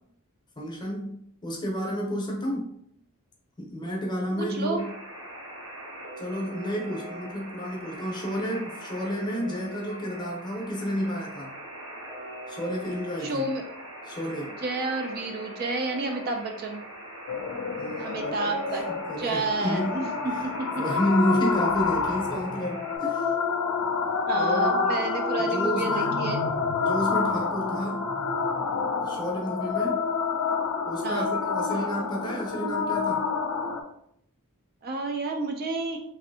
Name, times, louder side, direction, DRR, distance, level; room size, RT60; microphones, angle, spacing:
voice 1, 0.6-1.2 1.4-2.7 3.6-4.9 6.2-11.5 12.5-13.5 14.1-14.6 17.8-20.0 20.8-23.3 24.3-25.0 25.4-26.3 26.7-28.1 29.0-30.0 30.9-33.3, equal, 20° left, -1 dB, 0.7 m, -31 dB
voice 2, 4.4-4.8 13.2-13.7 14.6-16.8 18.0-18.8 19.2-20.1 20.4-20.5 24.3-26.4 31.0-31.3 34.8-36.0, right 3 dB, 45° right, 4 dB, 0.3 m, -30 dB
Alarm, 4.8-23.0, right 1 dB, 65° right, 1.3 m, -41 dB
sound 1, 17.3-33.8, left 5 dB, 70° left, 0.4 m, -28 dB
3.1 x 2.6 x 2.6 m, 0.73 s
head